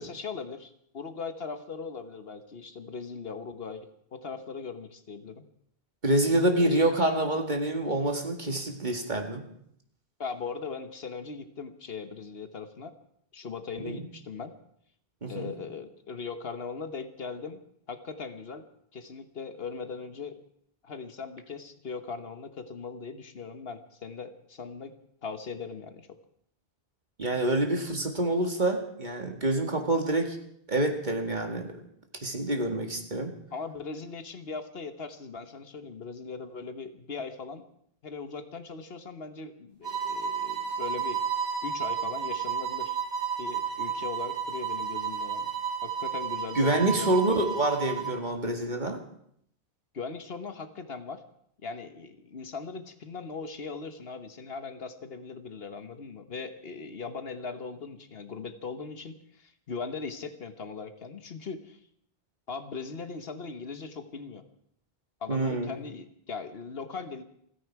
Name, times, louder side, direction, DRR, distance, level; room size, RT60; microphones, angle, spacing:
voice 1, 0.0-5.4 6.5-6.9 10.2-12.9 13.3-14.5 15.3-17.6 17.9-18.6 18.9-20.4 20.8-24.9 25.2-26.1 33.5-37.6 38.0-41.2 41.6-43.0 43.4-45.5 45.8-47.5 49.9-51.2 51.6-61.8 62.5-64.4 65.2-67.2, left 5 dB, 65° left, 9 dB, 1.4 m, -39 dB
voice 2, 6.0-9.4 13.8-14.0 15.2-15.5 27.2-30.4 30.7-31.8 32.2-33.3 46.6-49.0 65.3-65.7, right 1 dB, 45° right, 4 dB, 2.2 m, -27 dB
sound 1, 39.8-48.2, right 7 dB, 90° right, 5.4 m, -32 dB
29.0 x 10.0 x 4.7 m, 0.70 s
omnidirectional pair, 1.1 m